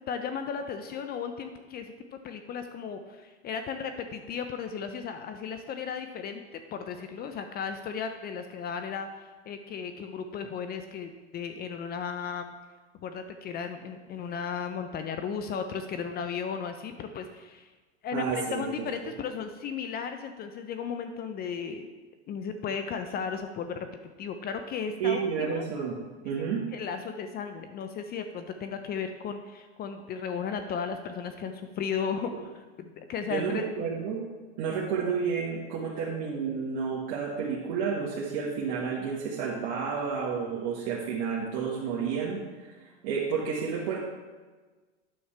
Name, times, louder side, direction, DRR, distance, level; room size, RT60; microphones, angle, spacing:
voice 1, 0.1-12.5 13.0-17.7 18.0-21.9 22.3-25.7 26.7-32.5 32.8-33.7, left 6 dB, 30° left, 8 dB, 0.5 m, -35 dB
voice 2, 18.1-18.7 19.0-19.1 25.0-26.0 26.2-26.6 33.3-34.2 34.6-44.0, right 6 dB, 55° right, -4 dB, 1.5 m, -31 dB
9.5 x 7.1 x 3.3 m, 1.3 s
hypercardioid pair, 115°, 35 cm